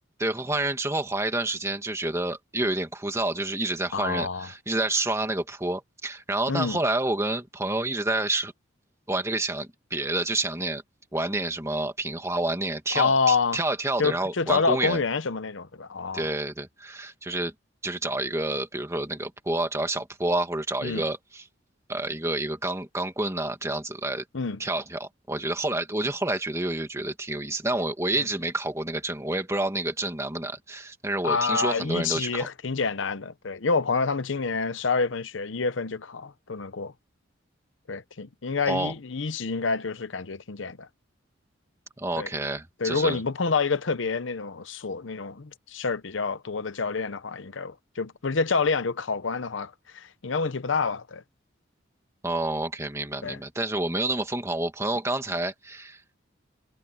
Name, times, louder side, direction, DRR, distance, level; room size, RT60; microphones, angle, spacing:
voice 1, 0.2-8.5 9.1-10.8 11.1-15.0 16.1-17.5 17.8-21.4 21.9-24.2 24.6-32.5 38.7-38.9 42.0-43.2 52.2-56.2, right 2 dB, 15° right, 2.1 m, -29 dB
voice 2, 3.9-4.5 6.5-6.8 12.9-13.6 14.0-16.3 20.8-21.0 24.3-24.6 28.2-28.3 31.2-36.9 37.9-40.9 42.2-42.3 42.8-51.2 53.2-53.4, left 4 dB, 75° left, 0.8 m, -27 dB
head